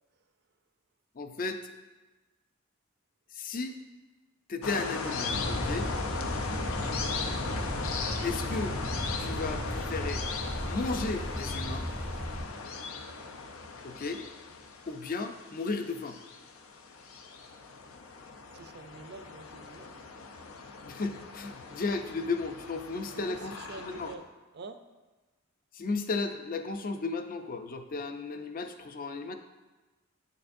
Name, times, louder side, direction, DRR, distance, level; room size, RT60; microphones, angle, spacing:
voice 1, 1.2-1.6 3.3-3.8 4.5-5.9 8.2-8.7 9.2-10.2 10.6-11.9 13.8-14.2 14.9-16.2 20.9-23.5 23.8-24.1 25.7-29.3, left 3 dB, 45° left, 7 dB, 0.5 m, -34 dB
sound 1, 4.6-24.1, left 4 dB, 80° left, 0.6 m, -38 dB
sound 2, 5.3-12.5, equal, 30° left, 0.9 m, -35 dB
voice 2, 18.5-19.9 23.1-24.2 24.5-24.8, right 4 dB, 50° right, 9 dB, 0.5 m, -46 dB
9.5 x 6.7 x 2.6 m, 1.2 s
head